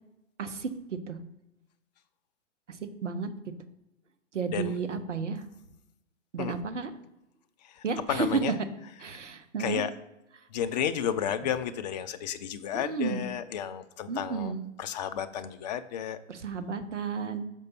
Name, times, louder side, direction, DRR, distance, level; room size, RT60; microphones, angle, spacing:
voice 1, 0.4-1.2 2.7-3.3 4.3-5.4 6.3-6.9 7.8-8.3 9.0-9.8 12.7-13.3 14.1-14.6 16.3-17.5, right 5 dB, 75° right, 10 dB, 0.9 m, -33 dB
voice 2, 7.6-8.6 9.6-9.9 10.5-14.5 14.8-16.2, left 9 dB, 35° left, 11 dB, 0.4 m, -32 dB
6.5 x 5.3 x 4.2 m, 0.92 s
figure-of-eight pair, 115°, 37 cm